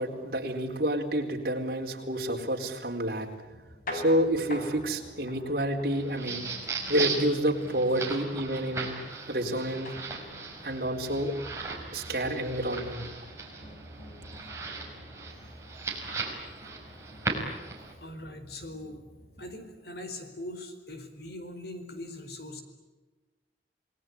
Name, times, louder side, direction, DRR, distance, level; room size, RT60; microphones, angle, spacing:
voice 1, 0.0-3.3 3.9-6.4 6.9-9.0 9.3-10.0 10.6-11.4 11.9-13.0, right 1 dB, 55° right, 0 dB, 4.2 m, -29 dB
sound 1, 3.5-19.6, left 1 dB, 50° left, 6.2 m, -47 dB
sound 2, 5.9-17.9, right 4 dB, 15° right, 5.4 m, -37 dB
voice 2, 14.3-14.8 15.3-15.4 18.0-19.0 19.4-22.6, left 1 dB, 65° left, 7 dB, 4.5 m, -42 dB
28.5 x 20.0 x 10.0 m, 1.2 s
head